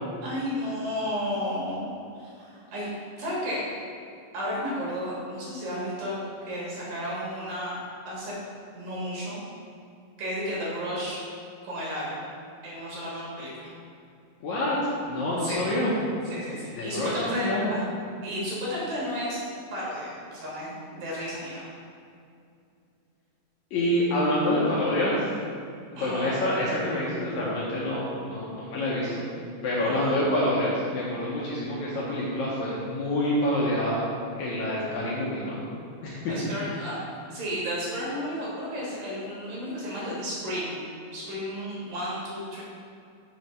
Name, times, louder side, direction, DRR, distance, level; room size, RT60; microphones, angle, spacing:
voice 1, 0.2-1.9 2.1-2.9 3.2-3.6 4.3-6.2 6.5-7.8 8.1-8.3 8.7-9.4 10.2-11.2 11.6-12.3 12.6-13.7 15.4-15.7 16.2-17.9 18.2-19.4 19.7-21.6 26.0-26.4 29.8-30.2 36.3-37.0 37.3-42.6, equal, 75° right, -6 dB, 3.1 m, -33 dB
voice 2, 14.4-15.9 16.8-17.7 23.7-25.3 25.9-29.2 29.6-34.0 34.4-35.6 36.0-36.4, left 1 dB, 75° left, -6 dB, 1.8 m, -27 dB
6.4 x 3.1 x 5.3 m, 2.5 s
omnidirectional pair, 4.0 m